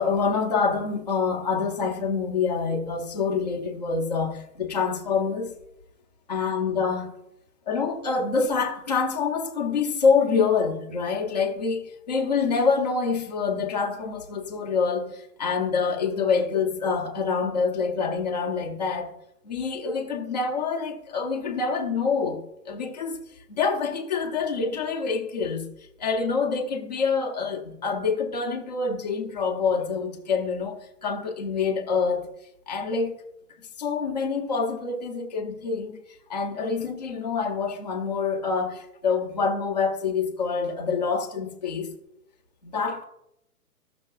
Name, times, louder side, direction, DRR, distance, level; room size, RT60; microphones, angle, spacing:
voice 1, 0.0-5.5 6.3-7.1 7.7-19.1 19.4-23.2 23.5-25.7 26.0-32.3 32.7-33.2 33.8-36.0 36.3-41.9 42.6-43.0, left 5 dB, 25° left, 0.7 m, -26 dB
15.5 x 6.5 x 2.3 m
hypercardioid pair, 175°, 46 cm